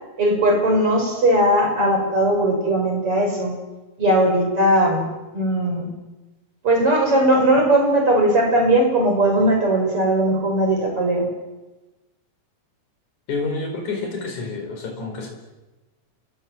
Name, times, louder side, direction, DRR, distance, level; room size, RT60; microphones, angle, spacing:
voice 1, 0.2-3.5 4.0-5.1 5.3-5.9 6.6-11.3, right 1 dB, 45° right, 3 dB, 7.1 m, -18 dB
voice 2, 13.3-15.3, left 3 dB, 75° left, 3 dB, 6.1 m, -28 dB
29.0 x 22.0 x 7.7 m, 1.1 s
omnidirectional pair, 3.4 m